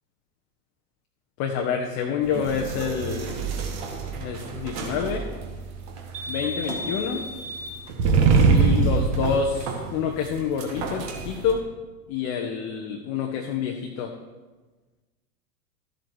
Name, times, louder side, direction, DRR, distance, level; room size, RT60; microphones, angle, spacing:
voice 1, 1.4-3.4 4.2-5.2 6.3-7.2 8.5-11.6 12.1-14.1, left 6 dB, 35° left, 2 dB, 1.0 m, -27 dB
sound 1, 2.2-11.5, right 4 dB, 50° right, 1.9 m, -25 dB
13.0 x 7.8 x 4.6 m, 1.2 s
figure-of-eight pair, 95°, 45 cm